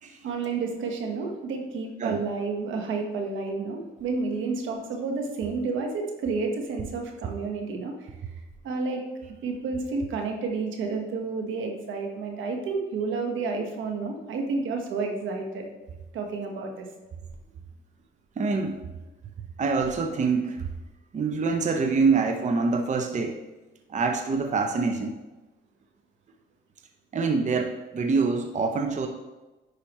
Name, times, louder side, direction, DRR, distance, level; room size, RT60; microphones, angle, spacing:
voice 1, 0.2-8.1 8.6-9.0 9.4-15.7 16.1-16.9, right 4 dB, 80° right, 2 dB, 1.3 m, -30 dB
voice 2, 18.4-18.8 19.6-20.7 21.1-23.4 23.9-25.2 27.1-29.1, right 4 dB, 35° right, 4 dB, 0.7 m, -25 dB
10.5 x 4.9 x 3.1 m, 1.1 s
cardioid pair, 90°, 20 cm